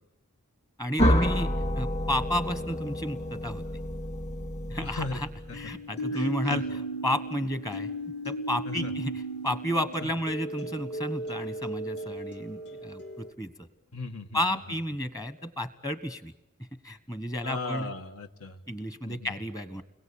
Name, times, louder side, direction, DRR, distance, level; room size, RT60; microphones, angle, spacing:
voice 1, 0.8-1.5 1.7-3.6 4.7-5.3 5.5-7.9 8.2-13.5 14.3-16.3 16.8-17.9 18.7-19.8, equal, 15° left, 12 dB, 1.3 m, -32 dB
sound 1, 1.0-5.7, equal, 35° left, 2.9 m, -29 dB
sound 2, 2.1-3.0 5.5-13.3, right 1 dB, 50° left, 2.4 m, -36 dB
voice 2, 4.8-5.2 5.5-5.7 6.1-6.6 8.7-9.1 13.9-14.6 17.4-18.6 19.1-19.3, left 3 dB, 75° left, 6 dB, 1.9 m, -37 dB
30.0 x 22.0 x 8.7 m, 0.89 s
head